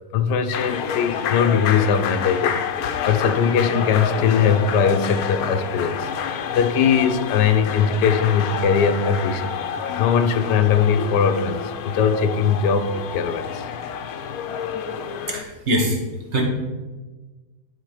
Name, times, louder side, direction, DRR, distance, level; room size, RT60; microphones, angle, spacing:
voice 1, 0.1-2.6 3.1-6.1 6.5-9.5 10.0-13.7, left 6 dB, 85° left, 8 dB, 1.3 m, -20 dB
sound 1, 0.5-15.4, left 7 dB, 70° left, 1.0 m, -28 dB
voice 2, 15.3-16.0 16.3-16.4, equal, 45° right, 1 dB, 1.4 m, -22 dB
11.0 x 3.8 x 4.8 m, 1.2 s
omnidirectional pair, 1.8 m